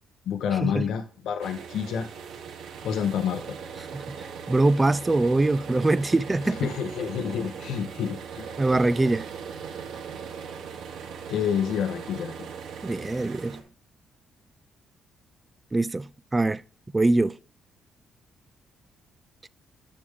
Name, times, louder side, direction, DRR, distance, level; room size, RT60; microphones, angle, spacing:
voice 1, 0.3-2.1 2.8-3.6 6.5-8.5 11.3-12.5, left 8 dB, 80° left, 1.0 m, -28 dB
sound 1, 1.4-13.6, right 6 dB, 85° right, 2.1 m, -39 dB
voice 2, 4.5-6.6 8.6-9.3 12.8-13.6 15.7-16.6 16.9-17.3, right 2 dB, 15° right, 0.3 m, -23 dB
10.0 x 6.9 x 3.5 m
cardioid pair, 125°, 0 cm